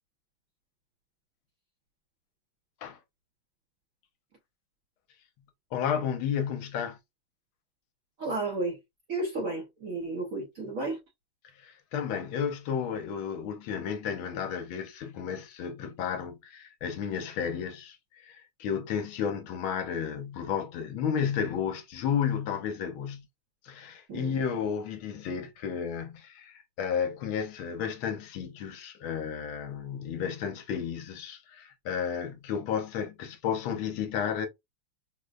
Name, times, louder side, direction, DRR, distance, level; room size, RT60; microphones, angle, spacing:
voice 1, 5.7-7.0 11.6-18.0 18.2-23.2 23.6-34.5, left 7 dB, 75° left, 1.4 m, -32 dB
voice 2, 8.2-8.8 9.1-11.0 24.1-24.4, right 2 dB, 55° right, 1.0 m, -32 dB
5.0 x 2.1 x 2.4 m
omnidirectional pair, 2.4 m